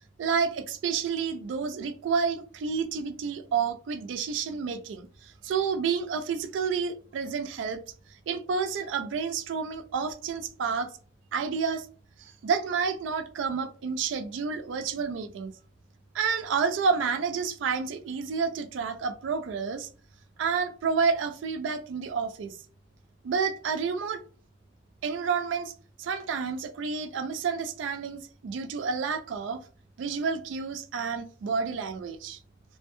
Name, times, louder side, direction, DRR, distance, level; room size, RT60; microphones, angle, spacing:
voice 1, 0.2-7.8 8.3-10.9 11.3-11.9 12.2-15.5 16.1-19.9 20.4-22.5 23.2-24.2 25.0-25.7 26.0-29.6 30.0-32.4, right 5 dB, 85° right, 0.3 m, -30 dB
2.1 x 2.1 x 2.9 m
head